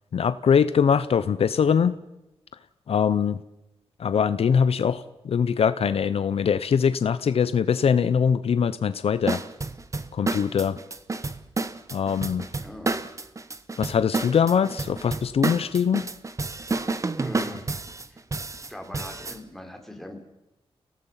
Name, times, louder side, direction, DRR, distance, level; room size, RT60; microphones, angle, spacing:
voice 1, 0.1-1.9 2.9-3.4 4.0-9.4 10.1-10.8 11.9-12.5 13.8-16.1, left 7 dB, 75° left, 14 dB, 0.7 m, -22 dB
sound 1, 9.3-19.4, right 3 dB, 30° right, 1.1 m, -30 dB
voice 2, 12.6-13.0 17.2-17.7 18.1-18.2 18.7-20.2, left 1 dB, 5° left, 3 dB, 3.7 m, -41 dB
29.0 x 18.0 x 5.7 m, 0.93 s
wide cardioid pair, 120°, 10 cm